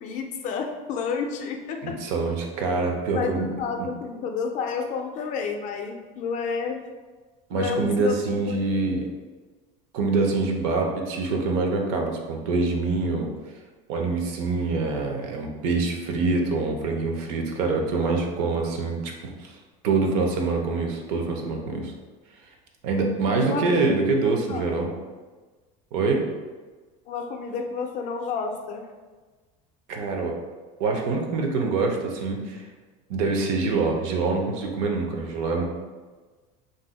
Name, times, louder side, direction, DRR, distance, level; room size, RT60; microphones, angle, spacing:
voice 1, 0.0-2.0 3.1-6.8 7.5-8.6 8.9-9.0 23.4-24.0 24.2-24.7 27.1-28.9, left 5 dB, 45° left, 4 dB, 0.4 m, -30 dB
voice 2, 1.8-3.5 7.5-9.1 9.9-13.3 13.9-19.5 19.8-21.9 22.8-24.9 25.9-26.2 29.9-30.4 30.8-32.6 33.1-35.6, right 3 dB, 75° right, 2 dB, 0.6 m, -25 dB
2.6 x 2.0 x 3.9 m, 1.3 s
cardioid pair, 145°, 18 cm